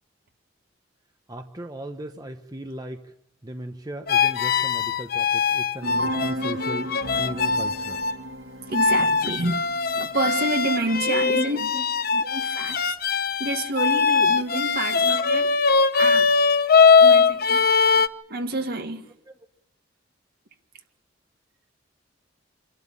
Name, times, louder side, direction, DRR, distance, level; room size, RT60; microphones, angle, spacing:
voice 1, 1.3-3.1 3.4-8.0 10.0-10.1 10.9-11.9 14.5-14.7 14.9-15.3 17.8-18.0, equal, 20° right, 1.0 m, -36 dB
sound 1, 4.1-8.2 8.7-18.1, left 5 dB, 50° left, 0.8 m, -21 dB
sound 2, 5.8-10.8, equal, 75° right, 2.6 m, -35 dB
voice 2, 8.7-9.6 10.0-11.6 12.1-13.0 13.4-15.5 15.9-16.3 17.0-17.7 18.3-19.1, right 2 dB, 55° right, 1.9 m, -28 dB
27.0 x 12.5 x 8.9 m
head